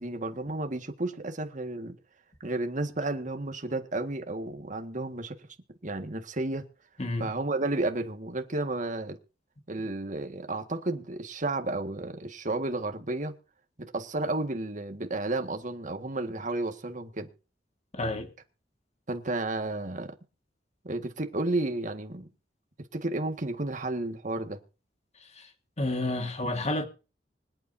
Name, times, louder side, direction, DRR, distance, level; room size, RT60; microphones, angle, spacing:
voice 1, 0.0-2.0 2.4-5.4 5.8-6.7 7.2-9.2 9.7-13.3 13.8-17.3 19.1-20.1 20.8-22.3 22.9-24.6, right 2 dB, 45° right, 1.8 m, -32 dB
voice 2, 17.9-18.3 25.4-25.5 25.8-26.9, left 2 dB, 35° left, 1.8 m, -30 dB
25.0 x 8.8 x 2.7 m
head